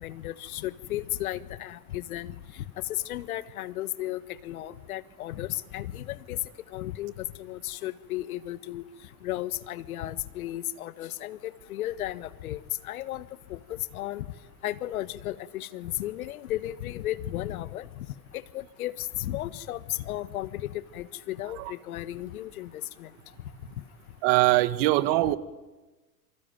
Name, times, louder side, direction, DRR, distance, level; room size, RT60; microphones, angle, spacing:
voice 1, 0.0-2.3 3.0-6.4 6.7-8.8 9.2-13.2 13.5-14.3 14.6-17.9 18.3-23.1 25.2-25.3, left 14 dB, 70° left, 14 dB, 1.5 m, -34 dB
voice 2, 24.2-25.4, right 18 dB, 50° right, 13 dB, 1.6 m, -22 dB
27.0 x 24.5 x 9.2 m, 1.2 s
hypercardioid pair, 105°, 45 cm